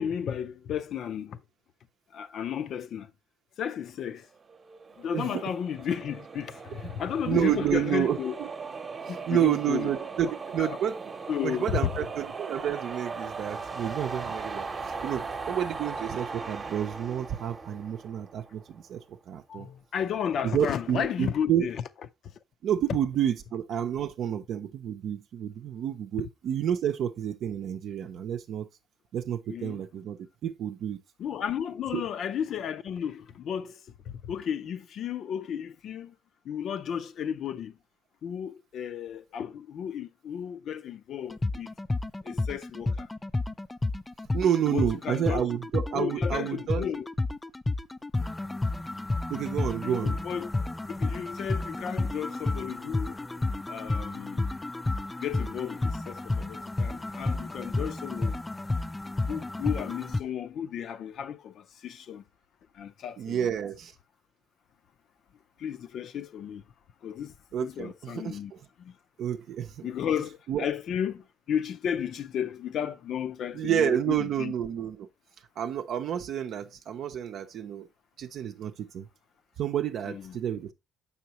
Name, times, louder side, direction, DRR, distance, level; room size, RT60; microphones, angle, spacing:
voice 1, 0.0-1.4 2.1-3.1 3.6-4.3 5.0-8.3 9.1-9.9 10.6-10.8 11.3-11.9 19.5-21.8 29.5-29.8 31.2-33.8 34.1-36.2 36.4-37.8 38.2-41.7 42.2-43.1 44.7-45.5 45.9-47.1 49.8-50.5 50.9-53.2 53.7-54.5 55.2-58.4 59.3-62.2 62.7-63.5 65.6-66.6 67.0-67.3 67.6-68.5 68.8-69.0 69.8-74.5 80.1-80.4, left 8 dB, 60° left, 0.5 m, -33 dB
sound 1, 4.5-18.8, right 4 dB, 35° right, 0.9 m, -39 dB
voice 2, 7.2-8.5 9.3-11.0 11.4-19.7 20.4-21.7 22.6-28.7 29.1-31.0 31.9-32.0 44.3-46.9 49.3-50.2 63.2-63.9 67.5-68.6 69.2-69.9 70.5-70.7 73.5-75.1 75.6-77.9 78.2-79.1 79.6-80.7, right 10 dB, 65° right, 0.6 m, -30 dB
sound 2, 41.3-60.2, left 2 dB, 15° left, 0.3 m, -31 dB
6.9 x 5.7 x 2.9 m
cardioid pair, 110°, 0 cm